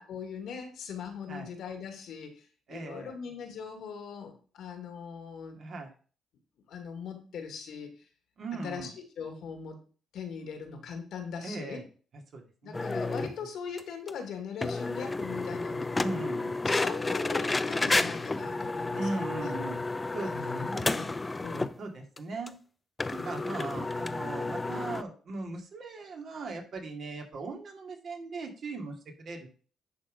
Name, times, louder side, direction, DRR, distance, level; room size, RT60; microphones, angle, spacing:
voice 1, 0.0-5.6 6.7-8.0 8.6-9.8 10.1-11.9 12.6-16.2 16.7-19.5 20.2-21.1 21.4-21.7 23.2-23.6, left 6 dB, 75° left, 6 dB, 1.9 m, -40 dB
voice 2, 2.7-3.1 5.6-5.9 8.4-8.9 11.4-11.8 12.3-12.9 13.2-13.3 16.0-16.6 18.9-19.8 20.1-20.9 21.8-22.5 23.1-29.5, right 3 dB, 55° right, 2 dB, 2.2 m, -38 dB
sound 1, 12.7-13.3 13.8-13.9 14.1-14.2 14.6-21.8 22.2-22.3 22.5-22.6 23.0-25.0, left 3 dB, 20° left, 0.5 m, -31 dB
10.5 x 3.8 x 5.0 m, 0.39 s
cardioid pair, 90°, 0 cm